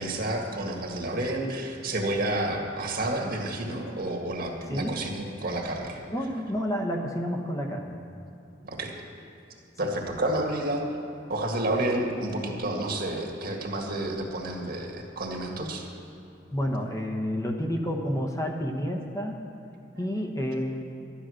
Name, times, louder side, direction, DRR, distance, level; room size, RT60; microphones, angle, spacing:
voice 1, 0.0-6.0 8.6-8.9 9.8-10.8 11.3-15.9, right 1 dB, 55° right, 1 dB, 1.8 m, -30 dB
voice 2, 4.7-5.0 6.1-8.0 16.5-19.4 19.9-20.8, equal, 20° left, 1 dB, 1.0 m, -30 dB
12.5 x 10.0 x 6.4 m, 2.9 s
head